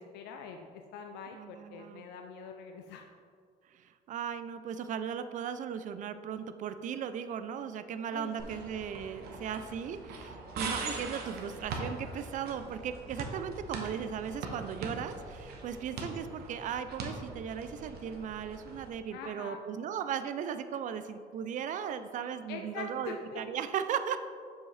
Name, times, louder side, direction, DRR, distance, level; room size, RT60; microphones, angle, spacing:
voice 1, 0.0-3.1 8.1-8.7 19.1-19.6 22.5-23.4, left 6 dB, 85° left, 4 dB, 0.5 m, -44 dB
voice 2, 1.3-2.1 3.7-24.2, right 8 dB, 50° right, 11 dB, 0.4 m, -37 dB
sound 1, 8.4-18.9, right 3 dB, 70° right, 1.1 m, -41 dB
7.2 x 5.5 x 3.3 m, 2.1 s
cardioid pair, 110°, 17 cm